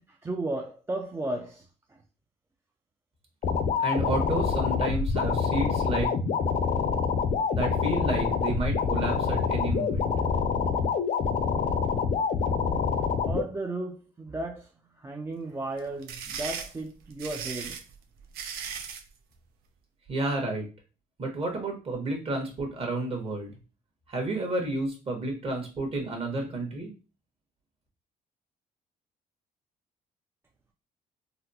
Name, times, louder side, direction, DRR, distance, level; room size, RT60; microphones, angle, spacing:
voice 1, 0.0-2.0 13.3-14.7 15.0-17.8, right 2 dB, 15° right, 0.3 m, -34 dB
sound 1, 3.4-13.4, left 5 dB, 50° left, 0.5 m, -26 dB
voice 2, 3.8-6.1 7.5-10.1 20.1-20.7 21.2-23.5 24.1-26.9, right 2 dB, 40° right, 1.2 m, -31 dB
sound 2, 15.8-19.1, right 7 dB, 80° right, 0.5 m, -37 dB
4.0 x 2.0 x 2.7 m
cardioid pair, 100°, 16 cm